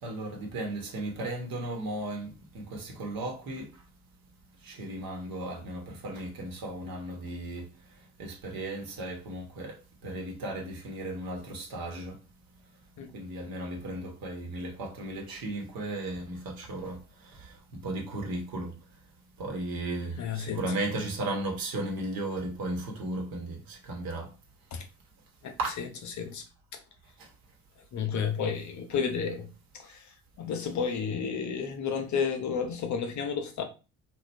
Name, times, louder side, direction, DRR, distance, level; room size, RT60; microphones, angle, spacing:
voice 1, 0.0-3.7 4.6-7.7 8.2-12.2 13.1-18.7 19.4-24.3 25.6-25.7 27.2-27.3, right 2 dB, 50° right, 1.2 m, -35 dB
voice 2, 20.2-20.6 24.7-24.9 25.4-25.5 26.2-26.4 27.9-33.6, left 6 dB, 40° left, 0.7 m, -32 dB
3.0 x 2.4 x 3.3 m
figure-of-eight pair, 50°, 44 cm